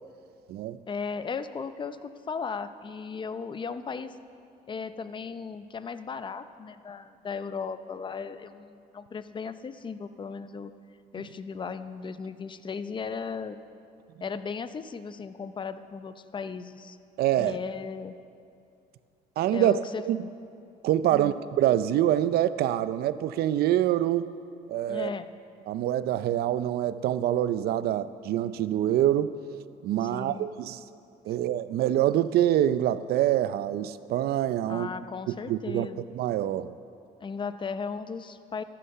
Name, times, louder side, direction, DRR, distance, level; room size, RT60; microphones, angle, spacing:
voice 1, 0.9-4.2 4.7-10.7 11.1-13.6 14.2-17.0 17.4-18.2 19.5-20.0 21.1-21.4 24.9-25.3 30.0-30.5 34.7-36.1 37.2-38.6, left 5 dB, 30° left, 12 dB, 0.6 m, -36 dB
voice 2, 17.2-17.6 19.4-19.7 20.1-20.2 20.8-24.3 24.7-25.1 25.7-29.4 29.8-30.8 31.3-34.9 35.5-35.9 36.1-36.7, right 12 dB, 70° right, 15 dB, 0.5 m, -25 dB
14.5 x 11.5 x 5.7 m, 2.5 s
cardioid pair, 110°, 17 cm